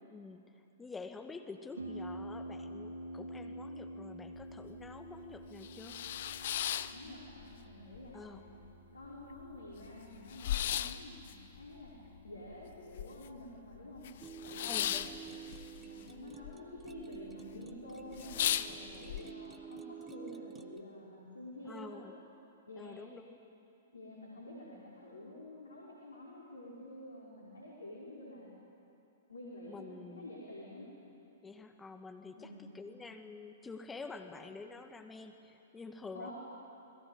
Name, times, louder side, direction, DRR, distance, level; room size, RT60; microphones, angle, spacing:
voice 1, 0.1-0.4 0.8-6.0 8.1-8.4 14.6-15.3 21.7-22.1 22.8-23.4 29.7-30.3 31.4-36.3, left 4 dB, 10° left, 5 dB, 2.1 m, -48 dB
Harp, 1.8-19.2, right 1 dB, 85° right, 3.4 m, -50 dB
sound 1, 4.4-4.5 4.9-5.0 5.4-7.6 7.9-8.7 9.0-9.1 9.3-13.5 13.7-16.5 16.8-17.3 17.7-17.8 18.1-19.2, left 11 dB, 55° left, 0.9 m, -37 dB
voice 2, 6.9-8.6 8.9-14.0 14.4-15.3 15.8-22.0 22.7-23.0 23.9-28.5 29.3-30.9 32.4-32.7 36.1-36.3, left 1 dB, 80° left, -4 dB, 5.3 m, -49 dB
sound 2, 14.2-20.8, right 8 dB, 15° right, 1.3 m, -49 dB
29.5 x 21.0 x 8.2 m, 2.8 s
figure-of-eight pair, 110°, 0 cm